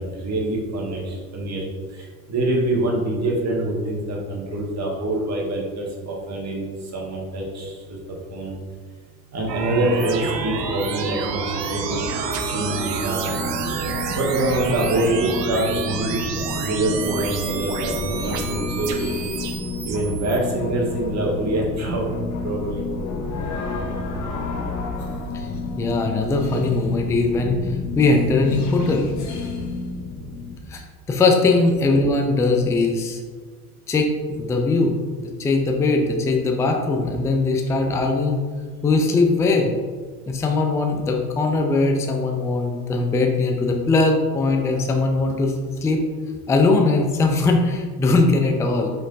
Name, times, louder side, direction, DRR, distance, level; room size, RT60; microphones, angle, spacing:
voice 1, 0.0-1.6 2.0-8.0 8.3-8.5 9.3-12.2 12.5-13.4 14.1-16.2 16.6-19.1 19.8-22.1 22.4-22.8, right 1 dB, 35° right, -2 dB, 1.4 m, -25 dB
sound 1, 9.5-20.4, right 5 dB, 90° right, 0.6 m, -29 dB
sound 2, 11.7-30.6, left 3 dB, 40° left, 0.9 m, -30 dB
voice 2, 25.8-29.1 30.7-33.2 33.9-34.1 34.4-38.4 38.8-39.7 40.3-45.5 45.8-46.0 46.5-48.9, left 3 dB, 5° left, 3 dB, 0.3 m, -20 dB
4.9 x 3.9 x 2.6 m, 1.5 s
hypercardioid pair, 70°, 47 cm